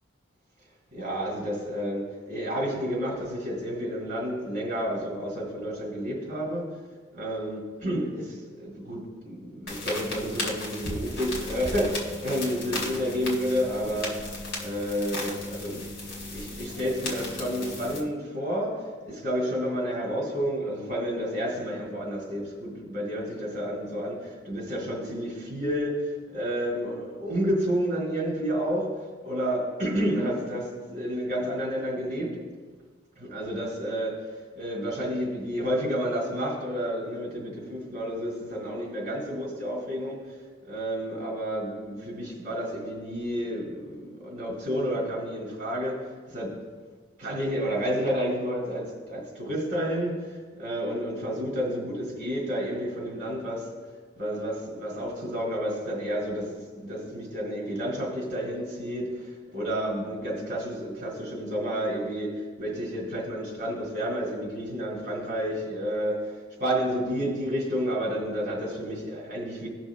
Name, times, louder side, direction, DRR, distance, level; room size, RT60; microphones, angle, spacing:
voice 1, 0.9-6.7 7.1-14.2 14.6-15.8 16.3-28.9 29.2-32.4 33.2-34.2 34.6-40.4 40.6-46.0 46.3-46.6 47.2-53.7 54.2-69.7, equal, 40° right, -3 dB, 2.6 m, -30 dB
sound 1, 9.7-18.0, left 2 dB, 55° left, 2.4 m, -35 dB
17.5 x 6.1 x 2.3 m, 1.5 s
head